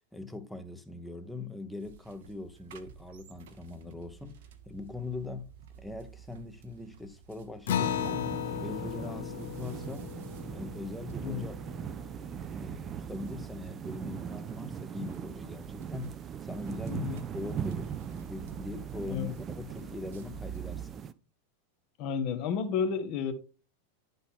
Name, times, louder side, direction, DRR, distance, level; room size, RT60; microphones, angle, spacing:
voice 1, 0.1-4.4 4.7-5.5 5.8-10.1 10.5-11.5 12.6-21.0, left 2 dB, 5° left, 0.8 m, -41 dB
sound 1, 1.8-20.9, right 8 dB, 55° right, 0.7 m, -49 dB
Acoustic guitar, 7.7-12.6, left 10 dB, 60° left, 0.4 m, -36 dB
sound 2, 7.8-21.1, right 8 dB, 25° right, 0.4 m, -40 dB
voice 2, 16.9-17.2 19.1-19.3 22.0-23.3, left 6 dB, 40° left, 1.0 m, -31 dB
11.0 x 4.1 x 3.6 m
figure-of-eight pair, 90°, 0 cm